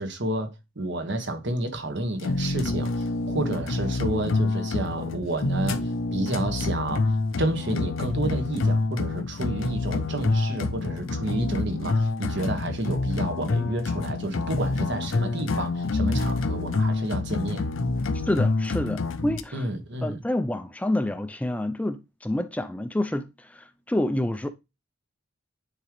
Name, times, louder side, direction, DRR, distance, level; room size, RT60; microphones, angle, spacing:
voice 1, 0.0-7.1 7.4-17.7 19.5-20.2, right 1 dB, 60° right, 1.5 m, -30 dB
sound 1, 2.2-19.4, left 3 dB, 75° left, 0.6 m, -27 dB
voice 2, 18.2-19.7 20.0-24.5, left 1 dB, 5° left, 0.4 m, -28 dB
9.6 x 3.7 x 3.2 m
head